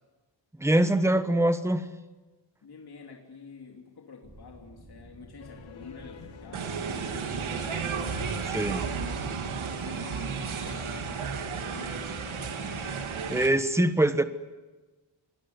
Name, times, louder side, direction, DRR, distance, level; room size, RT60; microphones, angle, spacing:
voice 1, 0.6-1.9 8.5-8.8 13.3-14.2, right 1 dB, 5° right, 10 dB, 1.2 m, -23 dB
voice 2, 2.6-11.3 11.7-12.1, left 4 dB, 55° left, 1 dB, 3.2 m, -48 dB
sound 1, 4.2-13.0, right 1 dB, 25° right, 7.0 m, -50 dB
sound 2, 5.4-13.1, left 7 dB, 75° left, 2.3 m, -47 dB
sound 3, 6.5-13.5, right 6 dB, 90° right, 2.8 m, -33 dB
27.0 x 21.5 x 9.7 m, 1.2 s
wide cardioid pair, 175°, 47 cm